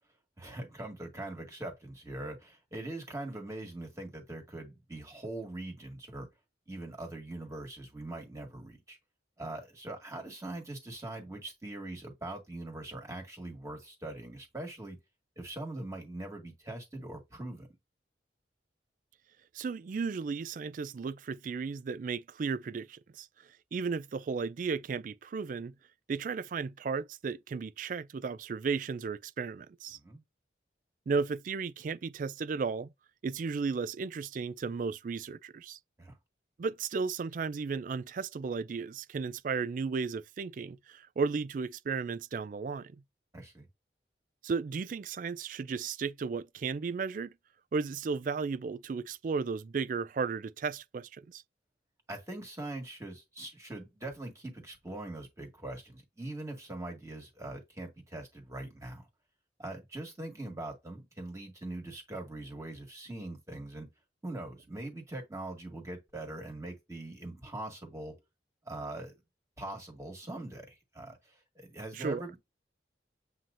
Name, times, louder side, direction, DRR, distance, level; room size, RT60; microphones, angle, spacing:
voice 1, 0.4-6.3 6.7-9.0 9.4-15.0 15.4-17.7 29.9-30.2 36.0-36.2 43.3-43.7 52.1-59.1 59.6-63.9 64.2-68.1 68.6-69.1 69.6-72.4, right 2 dB, 15° right, 1.6 m, -42 dB
voice 2, 19.5-25.7 26.1-30.0 31.1-32.9 33.2-35.8 36.6-42.9 44.4-47.3 47.7-51.4 71.9-72.2, right 5 dB, 45° right, 0.3 m, -34 dB
7.6 x 2.8 x 2.5 m
head